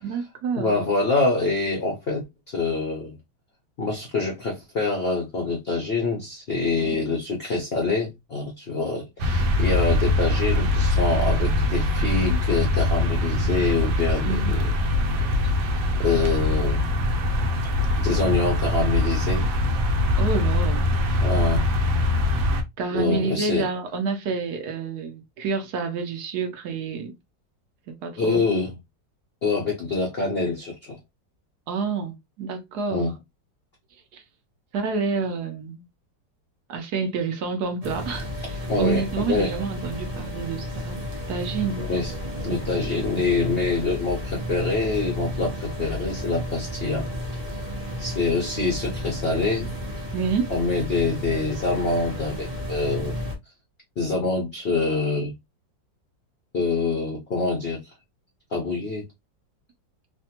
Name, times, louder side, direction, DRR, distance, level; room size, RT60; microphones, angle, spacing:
voice 1, 0.0-0.8 6.7-7.0 14.3-14.5 20.2-20.8 22.8-27.1 28.0-28.4 31.7-33.1 34.1-34.2 34.7-35.8 36.7-41.0 41.3-41.9 50.1-50.5, right 5 dB, 70° right, 1.1 m, -28 dB
voice 2, 0.6-3.2 3.8-14.7 16.0-16.9 18.0-19.5 21.2-21.7 22.9-23.7 28.2-28.7 29.4-31.0 32.9-33.1 38.7-39.5 41.8-42.1 42.4-47.1 48.0-49.7 50.5-53.1 54.0-55.3 56.5-57.8 58.5-59.1, left 3 dB, 65° left, 0.6 m, -25 dB
sound 1, 9.2-22.6, left 1 dB, 85° right, 1.4 m, -23 dB
sound 2, 37.8-53.3, equal, 50° right, 0.4 m, -32 dB
3.2 x 2.2 x 2.7 m
omnidirectional pair, 1.9 m